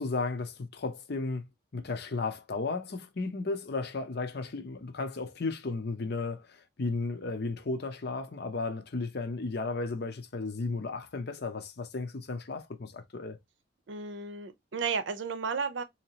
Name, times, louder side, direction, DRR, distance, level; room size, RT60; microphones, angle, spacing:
voice 1, 0.0-1.4 1.7-13.4, left 3 dB, 60° left, 0.7 m, -34 dB
voice 2, 13.9-15.8, right 5 dB, 70° right, 0.6 m, -33 dB
3.9 x 2.9 x 2.9 m
head